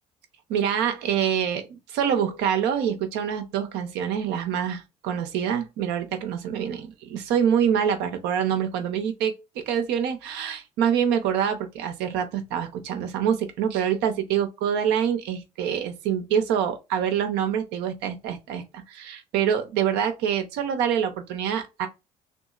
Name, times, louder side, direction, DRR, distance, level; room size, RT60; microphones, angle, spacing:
voice 1, 0.5-21.9, right 8 dB, 60° right, 0.6 m, -26 dB
2.8 x 2.3 x 2.3 m
figure-of-eight pair, 50°, 19 cm